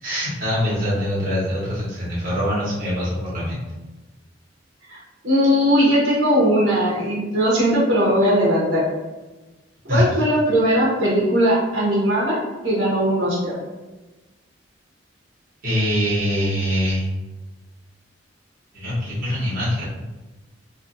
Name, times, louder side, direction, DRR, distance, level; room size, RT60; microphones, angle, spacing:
voice 1, 0.0-3.6 9.9-10.1 15.6-17.1 18.7-19.8, equal, 50° right, -9 dB, 1.2 m, -23 dB
voice 2, 5.2-8.8 9.8-12.4 12.6-13.5, equal, 80° right, -6 dB, 0.9 m, -19 dB
2.6 x 2.5 x 2.5 m, 1.1 s
head